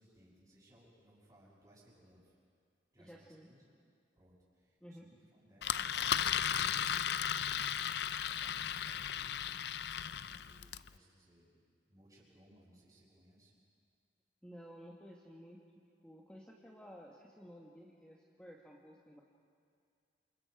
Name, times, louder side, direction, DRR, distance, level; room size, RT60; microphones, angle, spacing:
voice 1, 0.0-2.3 2.9-3.7 4.2-7.8 8.2-11.6 11.9-13.6, equal, 20° right, -10 dB, 6.4 m, -64 dB
voice 2, 3.0-3.5 4.8-5.1 14.4-15.6 16.0-19.2, equal, 5° left, -3 dB, 1.5 m, -54 dB
Engine, 5.6-10.9, left 9 dB, 65° left, 0.5 m, -35 dB
28.5 x 27.5 x 4.9 m, 2.3 s
head